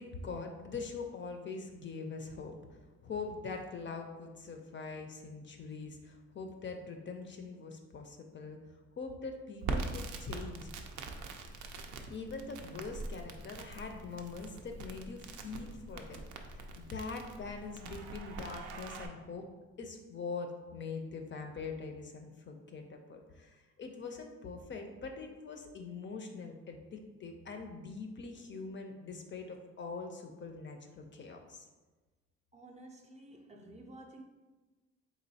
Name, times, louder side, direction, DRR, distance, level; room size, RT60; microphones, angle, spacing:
voice 1, 0.0-8.6 9.0-10.7 12.1-16.2 16.5-19.5 19.8-31.7, left 4 dB, 40° left, 4 dB, 0.4 m, -43 dB
Crackle, 9.6-19.1, right 3 dB, 80° right, 0.5 m, -43 dB
voice 2, 32.5-34.2, right 1 dB, 25° right, 2 dB, 0.4 m, -52 dB
3.8 x 3.0 x 2.7 m, 1.2 s
cardioid pair, 90°, 30 cm